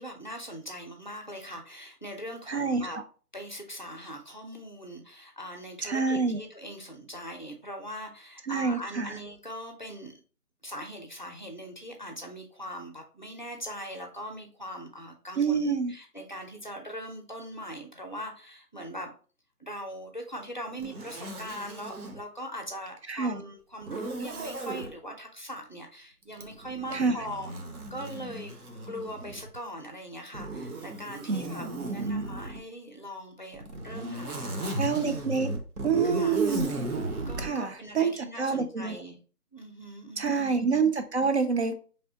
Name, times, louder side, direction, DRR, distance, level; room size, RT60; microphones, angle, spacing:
voice 1, 0.0-3.0 3.3-10.2 10.6-19.1 19.6-27.5 27.9-28.5 28.9-35.0 36.1-36.4 37.3-39.2 39.5-40.5, equal, 30° left, 3 dB, 0.6 m, -41 dB
voice 2, 2.5-3.0 5.8-6.4 8.5-9.2 15.4-15.9 23.1-23.4 26.9-27.2 31.3-32.2 34.8-35.5 35.8-36.6 37.4-39.0 40.2-41.7, right 5 dB, 45° right, 8 dB, 0.6 m, -27 dB
Zipper (clothing), 20.8-22.2 23.8-24.9 26.3-29.6 30.3-32.6 33.5-37.5, right 2 dB, 65° right, 1.1 m, -35 dB
4.4 x 3.4 x 2.7 m, 0.39 s
figure-of-eight pair, 170°, 47 cm